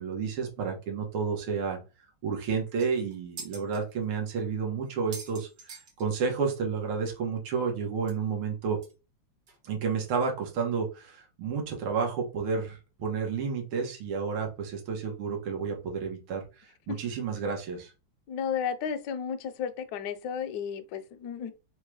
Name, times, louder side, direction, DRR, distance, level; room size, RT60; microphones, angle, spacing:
voice 1, 0.0-1.8 2.2-8.8 9.6-17.9, right 5 dB, 80° right, 2.0 m, -31 dB
sound 1, 2.4-2.5 2.8-3.8 4.4-4.5 4.9-6.5 6.8-6.9 7.1-7.2 8.1-8.2 8.8-8.9 9.5-9.6, right 4 dB, 55° right, 1.5 m, -45 dB
voice 2, 18.3-21.5, left 7 dB, 70° left, 1.0 m, -33 dB
4.6 x 2.2 x 4.7 m
omnidirectional pair, 2.3 m